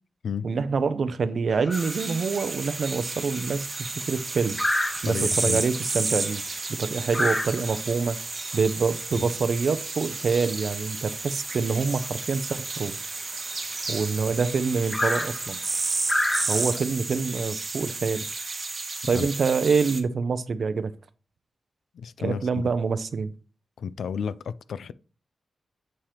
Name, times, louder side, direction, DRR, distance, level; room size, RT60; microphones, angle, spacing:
voice 1, 0.4-4.6 5.0-6.4 6.7-8.2 8.5-13.0 13.9-15.6 16.5-18.3 19.1-20.9 22.2-23.3, right 5 dB, 55° right, 0.5 m, -26 dB
sound 1, 1.5-16.7, left 1 dB, 20° left, 0.7 m, -33 dB
sound 2, 1.7-20.0, right 3 dB, 35° right, 0.9 m, -32 dB
voice 2, 5.0-5.6 9.1-9.3 19.1-19.3 21.9-22.5 23.8-24.9, left 7 dB, 90° left, 0.3 m, -32 dB
7.5 x 2.9 x 4.9 m
wide cardioid pair, 140°, 0 cm